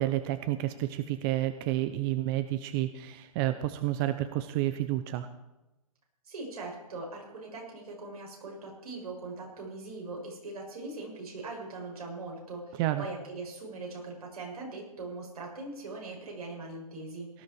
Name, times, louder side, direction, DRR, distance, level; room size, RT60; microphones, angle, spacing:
voice 1, 0.0-5.3 12.8-13.0, right 14 dB, 35° right, 11 dB, 0.8 m, -30 dB
voice 2, 6.3-17.3, right 3 dB, 80° right, -1 dB, 7.3 m, -41 dB
18.0 x 13.0 x 4.8 m, 0.99 s
hypercardioid pair, 130°, 19 cm